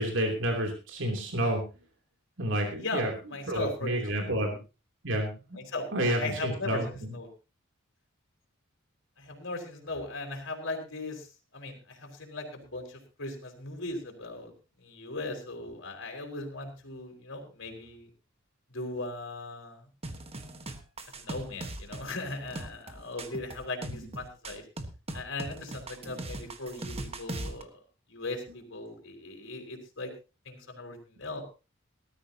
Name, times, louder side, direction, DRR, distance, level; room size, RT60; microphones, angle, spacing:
voice 1, 0.0-1.6 2.4-3.1 3.5-4.6 5.0-5.6 5.9-6.9 23.8-24.0, right 1 dB, 60° right, 2 dB, 3.2 m, -29 dB
voice 2, 3.3-3.9 4.2-4.3 5.6-5.8 6.2-7.3 9.2-14.5 14.8-18.1 18.7-19.8 21.2-24.6 25.1-27.8 28.1-30.1 30.4-31.4, left 2 dB, 60° left, 3 dB, 4.7 m, -38 dB
sound 1, 20.0-27.6, right 1 dB, 30° right, 1.4 m, -40 dB
19.0 x 13.5 x 2.9 m, 0.30 s
head